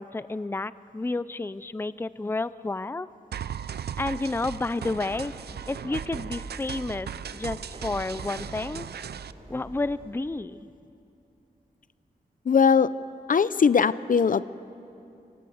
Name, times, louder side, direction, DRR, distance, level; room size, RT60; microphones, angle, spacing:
voice 1, 0.0-3.1 4.0-8.9 9.5-10.6, left 2 dB, 15° left, 16 dB, 0.5 m, -31 dB
sound 1, 3.3-9.3, right 8 dB, 85° right, 0.6 m, -37 dB
sound 2, 4.7-10.2, right 1 dB, 35° right, 3.7 m, -46 dB
voice 2, 12.5-12.9 13.3-14.6, left 6 dB, 55° left, 16 dB, 0.6 m, -20 dB
27.5 x 24.0 x 8.0 m, 2.7 s
wide cardioid pair, 100°, 16 cm